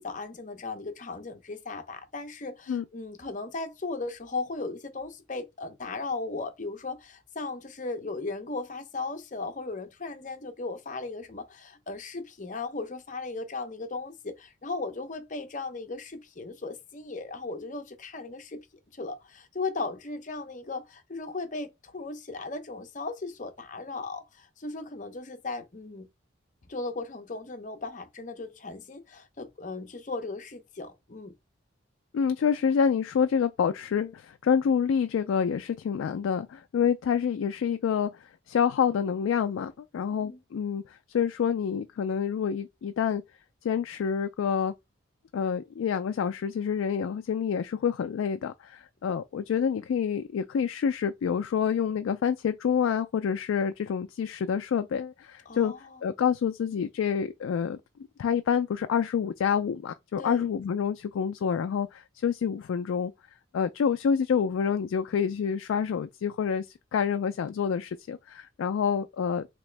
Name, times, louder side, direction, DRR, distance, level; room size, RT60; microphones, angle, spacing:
voice 1, 0.0-18.7 18.9-26.1 26.7-31.3 40.1-40.4 49.6-49.8 55.5-56.0 60.2-60.4, left 3 dB, 40° left, 0.7 m, -37 dB
voice 2, 32.1-43.2 43.6-44.7 45.3-55.7 56.0-57.8 58.2-63.1 63.5-66.7 66.9-69.5, left 7 dB, 85° left, 0.3 m, -27 dB
3.4 x 3.0 x 3.2 m
head